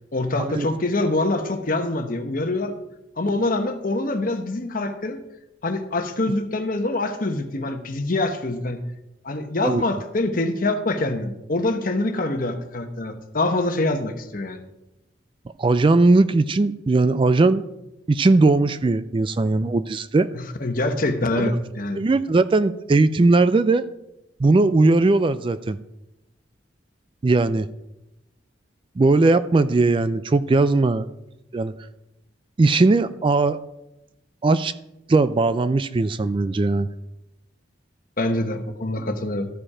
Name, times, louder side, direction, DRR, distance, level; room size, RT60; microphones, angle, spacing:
voice 1, 0.1-2.7 3.2-5.2 5.6-8.8 9.2-14.6 20.3-22.0 38.2-39.5, left 2 dB, 50° left, 7 dB, 1.0 m, -25 dB
voice 2, 15.6-17.7 18.1-20.3 21.4-21.6 22.0-23.9 24.4-25.8 27.2-27.7 29.0-31.1 31.5-31.7 32.6-33.6 34.4-34.7 35.1-36.9, right 3 dB, 30° right, 13 dB, 0.3 m, -19 dB
14.0 x 5.1 x 4.8 m, 0.91 s
head